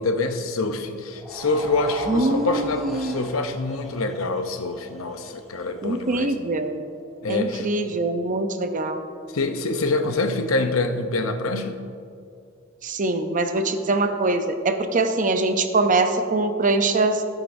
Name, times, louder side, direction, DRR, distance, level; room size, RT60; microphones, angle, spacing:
voice 1, 0.0-6.3 7.2-7.7 9.3-11.8, left 3 dB, 75° left, 7 dB, 0.7 m, -25 dB
sound 1, 1.1-7.4, equal, ahead, 1.5 m, -39 dB
voice 2, 2.1-3.3 5.8-6.8 7.3-9.0 12.8-17.3, right 2 dB, 40° right, 7 dB, 0.6 m, -23 dB
14.5 x 8.9 x 2.6 m, 2.4 s
head